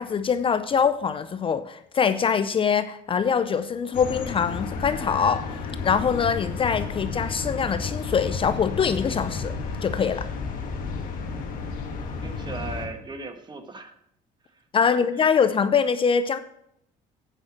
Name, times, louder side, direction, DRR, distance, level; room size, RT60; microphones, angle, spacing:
voice 1, 0.0-5.4 5.8-9.5 9.8-10.3 14.7-16.4, left 6 dB, 35° left, 11 dB, 0.5 m, -23 dB
sound 1, 3.9-12.9, left 4 dB, 60° left, 1.9 m, -32 dB
voice 2, 12.2-13.9 14.7-15.3, right 3 dB, 30° right, 7 dB, 1.4 m, -38 dB
9.1 x 5.6 x 5.9 m, 0.73 s
supercardioid pair, 90°, 16 cm